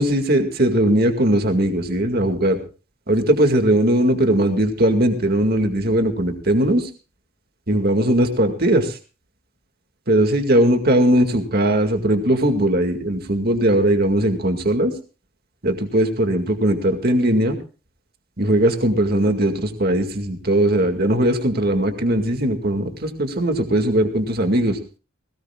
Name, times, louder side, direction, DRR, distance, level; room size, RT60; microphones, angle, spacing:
voice 1, 0.0-2.6 3.1-6.9 7.7-9.0 10.1-14.9 15.6-17.6 18.4-24.8, right 1 dB, 45° right, 5 dB, 2.1 m, -19 dB
20.0 x 18.5 x 2.4 m, 0.34 s
head